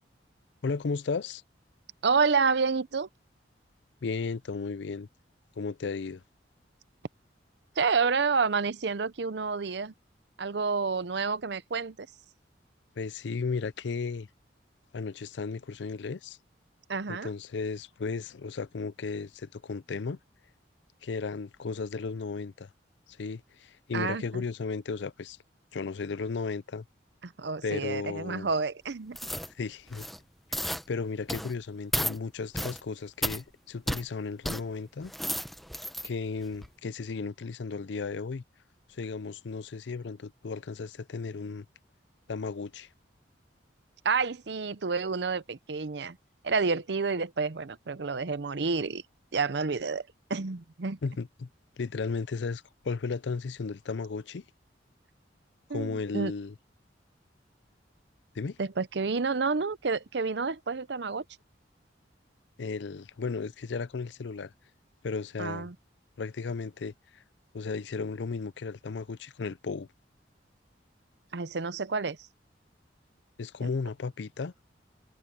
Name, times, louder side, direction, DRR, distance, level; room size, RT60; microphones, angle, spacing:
voice 1, 0.6-1.4 4.0-5.1 5.6-6.2 13.0-14.3 14.9-16.4 17.1-20.2 21.0-22.7 23.1-25.4 25.7-26.9 27.6-28.5 29.5-30.1 30.5-30.6 30.9-35.1 36.0-38.4 38.9-41.6 42.3-42.9 51.0-51.5 51.8-54.4 55.7-56.5 58.3-58.6 62.6-64.5 65.0-65.7 66.2-67.2 67.5-69.9 73.4-74.5, left 4 dB, 75° left, 0.5 m, -34 dB
voice 2, 2.0-3.1 7.8-9.9 10.4-12.1 16.9-17.3 23.9-24.4 27.2-29.2 44.0-46.2 46.4-49.0 49.3-51.0 55.7-56.3 58.6-61.2 65.4-65.8 71.3-72.2 73.6-73.7, right 4 dB, 65° right, 0.7 m, -29 dB
sound 1, 29.1-29.5 29.9-30.2 30.5-30.8 31.3-31.5 31.9-32.2 32.5-32.8 33.2-33.4 33.9-34.0 34.4-34.6 35.0-36.1 36.5-36.7, equal, ahead, 0.7 m, -32 dB
head